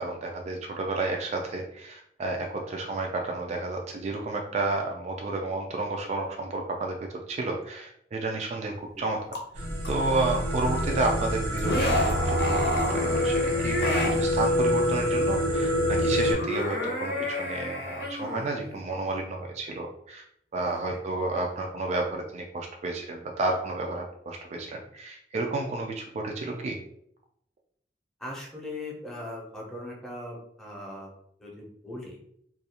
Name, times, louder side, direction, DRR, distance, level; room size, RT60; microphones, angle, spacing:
voice 1, 0.0-7.0 7.3-9.2 9.6-20.2 20.5-26.8, right 2 dB, 40° right, 1 dB, 0.3 m, -31 dB
sound 1, 9.3-9.4 9.8-9.9 11.6-14.2 16.1-18.7, left 1 dB, 60° left, 0.7 m, -30 dB
sound 2, 9.6-16.3, left 1 dB, 85° right, 1.0 m, -26 dB
voice 2, 20.6-21.0 28.2-31.1 31.4-32.2, left 1 dB, 5° left, -4 dB, 0.7 m, -40 dB
2.4 x 2.3 x 2.8 m, 0.69 s
head